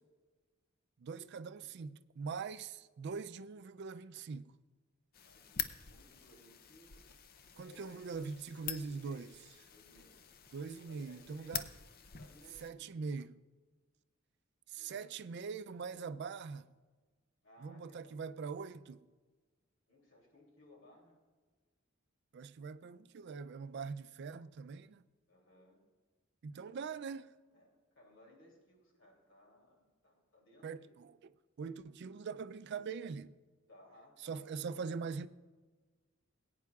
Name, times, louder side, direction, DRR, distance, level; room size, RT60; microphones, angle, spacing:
voice 1, 1.0-4.5 7.6-9.3 10.5-11.7 12.6-13.4 14.7-16.7 17.6-19.1 22.3-25.0 26.4-27.3 30.6-31.3 31.6-33.4 34.2-35.3, right 5 dB, 55° right, 0.4 m, -42 dB
sound 1, 5.1-12.7, left 9 dB, 45° left, 0.5 m, -46 dB
voice 2, 5.2-7.0 7.5-8.3 8.8-9.3 9.7-10.2 10.7-11.7 12.1-13.0 14.7-15.2 17.4-18.2 19.9-21.2 25.3-25.8 27.5-30.9 33.7-34.9, left 1 dB, 65° left, 2.8 m, -62 dB
19.5 x 9.3 x 2.4 m
head